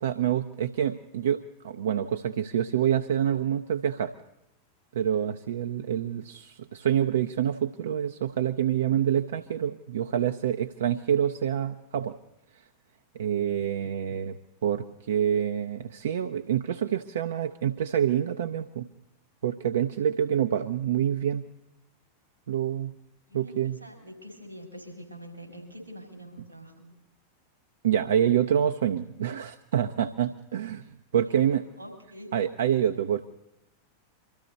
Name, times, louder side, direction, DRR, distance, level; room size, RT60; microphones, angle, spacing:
voice 1, 0.0-4.1 4.9-12.2 13.1-14.4 14.6-18.9 19.4-21.4 22.5-22.9 23.3-23.8 27.8-30.9 31.1-31.6 32.3-33.3, right 9 dB, 65° right, 8 dB, 0.6 m, -27 dB
voice 2, 23.3-26.9 31.2-32.3, equal, 85° right, 0 dB, 5.2 m, -45 dB
24.5 x 14.0 x 4.1 m, 0.88 s
figure-of-eight pair, 90°, 0 cm